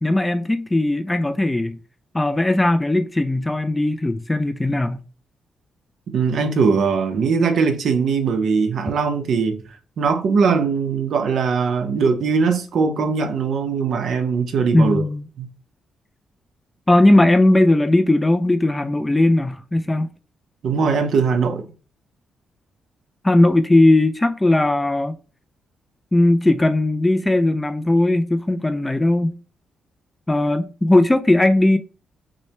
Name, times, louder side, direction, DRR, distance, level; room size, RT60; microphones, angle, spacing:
voice 1, 0.0-1.8 2.1-5.0 14.7-15.2 16.9-20.1 23.2-25.1 26.1-29.4 30.3-31.8, left 1 dB, 10° left, 0.3 m, -18 dB
voice 2, 6.1-9.6 10.0-15.0 15.4-15.5 20.6-21.7, right 5 dB, 60° right, 0.8 m, -20 dB
6.3 x 2.1 x 2.9 m
cardioid pair, 140°, 0 cm